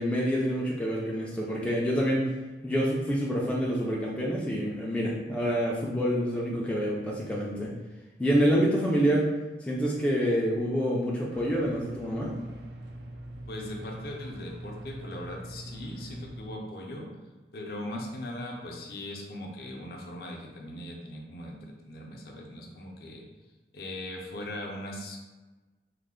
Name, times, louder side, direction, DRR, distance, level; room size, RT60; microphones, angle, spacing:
voice 1, 0.0-2.2 2.6-7.7 8.2-9.3 9.6-12.3, equal, 5° left, -4 dB, 0.3 m, -27 dB
sound 1, 11.3-16.5, right 1 dB, 80° right, 0.4 m, -43 dB
voice 2, 13.5-17.1 17.5-23.2 23.7-25.2, left 1 dB, 55° left, 0 dB, 0.5 m, -39 dB
3.1 x 2.1 x 3.6 m, 1.2 s
head